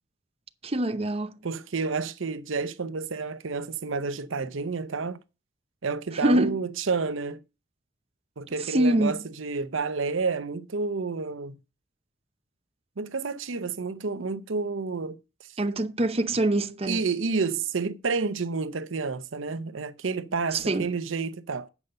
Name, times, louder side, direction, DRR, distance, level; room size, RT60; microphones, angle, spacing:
voice 1, 0.6-1.4 6.1-6.6 8.6-9.2 15.6-17.0 20.5-20.9, right 1 dB, 30° right, 0.7 m, -25 dB
voice 2, 1.4-5.2 5.8-7.4 8.4-11.6 13.0-15.2 16.9-21.7, right 4 dB, 75° right, 0.7 m, -30 dB
8.4 x 5.4 x 6.6 m
head